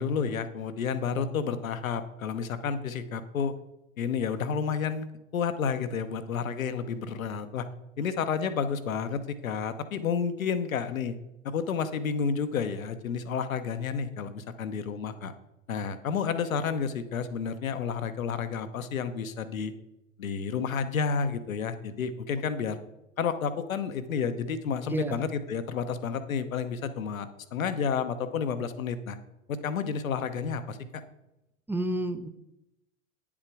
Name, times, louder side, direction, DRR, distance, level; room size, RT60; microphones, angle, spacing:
voice 1, 0.0-3.5 4.0-5.1 5.3-7.7 8.0-11.2 11.4-15.3 15.7-19.7 20.2-22.8 23.2-29.2 29.5-31.0, left 6 dB, 75° left, 11 dB, 1.0 m, -30 dB
voice 2, 31.7-32.3, right 1 dB, 5° right, 9 dB, 0.5 m, -29 dB
9.7 x 7.4 x 4.7 m, 0.90 s
figure-of-eight pair, 85°, 41 cm